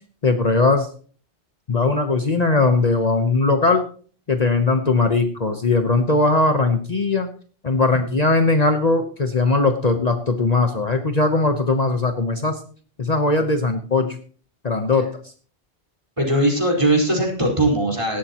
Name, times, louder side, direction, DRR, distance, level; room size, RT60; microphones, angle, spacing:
voice 1, 0.2-0.9 1.7-3.8 4.3-7.3 7.6-12.6 13.0-14.2 14.6-15.1, left 3 dB, 40° left, 6 dB, 1.1 m, -19 dB
voice 2, 16.2-18.2, right 1 dB, 30° right, -1 dB, 4.8 m, -20 dB
17.5 x 12.5 x 3.0 m, 0.44 s
omnidirectional pair, 1.0 m